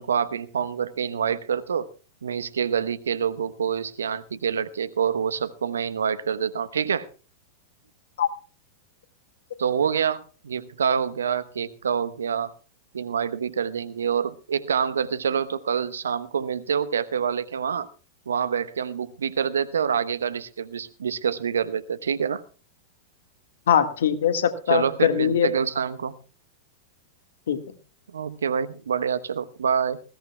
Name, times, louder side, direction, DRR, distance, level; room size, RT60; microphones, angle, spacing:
voice 1, 0.0-1.9 2.2-7.1 9.6-12.5 12.9-17.9 18.3-22.4 24.7-26.2 28.1-30.0, right 7 dB, 75° right, 0.9 m, -26 dB
voice 2, 23.7-25.5 27.5-27.6, left 9 dB, 70° left, 1.7 m, -21 dB
20.0 x 17.0 x 2.3 m
figure-of-eight pair, 95°, 0 cm